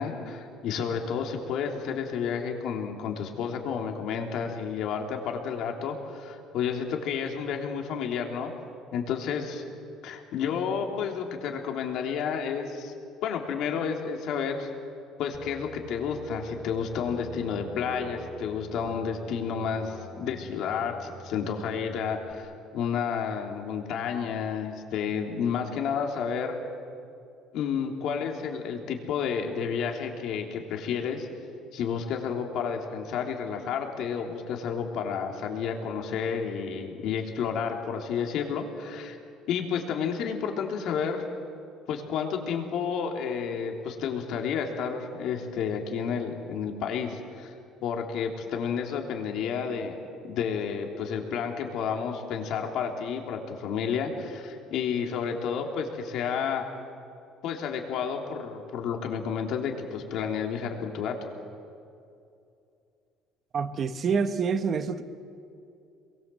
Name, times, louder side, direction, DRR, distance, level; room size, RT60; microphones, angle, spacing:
voice 1, 0.0-8.5 8.9-9.6 10.0-12.9 13.2-14.7 15.2-26.5 27.5-31.3 31.7-39.2 39.5-41.2 41.9-47.5 47.8-50.0 50.2-56.6 57.4-61.3, left 6 dB, 60° left, 2 dB, 3.3 m, -31 dB
sound 1, 15.3-22.3, equal, 5° right, 1.3 m, -43 dB
voice 2, 63.5-65.0, right 5 dB, 35° right, 9 dB, 1.3 m, -27 dB
27.5 x 22.5 x 7.8 m, 2.5 s
cardioid pair, 155°, 0 cm